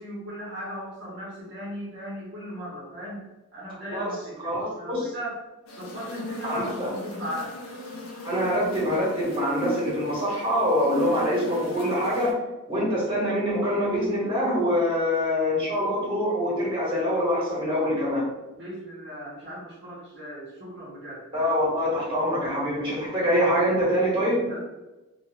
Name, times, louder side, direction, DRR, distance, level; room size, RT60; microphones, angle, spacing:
voice 1, 0.0-3.2 3.5-5.4 5.8-7.5 18.6-21.3 24.4-24.6, equal, 50° right, -8 dB, 0.8 m, -37 dB
voice 2, 4.4-5.1 6.4-6.9 8.2-12.4 12.7-18.3 21.3-24.5, equal, 25° right, -8 dB, 1.2 m, -25 dB
sound 1, 5.7-12.3, left 1 dB, 70° left, 0.7 m, -38 dB
2.6 x 2.3 x 3.2 m, 1.0 s
head